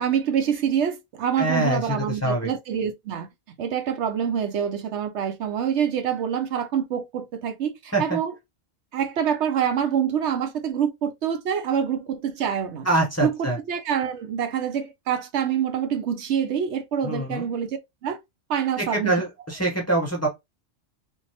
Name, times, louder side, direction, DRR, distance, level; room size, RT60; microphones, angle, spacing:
voice 1, 0.0-3.3 3.6-8.3 8.9-12.9 13.2-18.2 18.5-19.1, right 8 dB, 75° right, 0.9 m, -26 dB
voice 2, 1.4-2.5 7.9-8.2 12.8-13.6 17.0-17.5 18.8-20.3, right 1 dB, 15° left, 0.8 m, -24 dB
3.4 x 2.0 x 2.8 m
omnidirectional pair, 1.2 m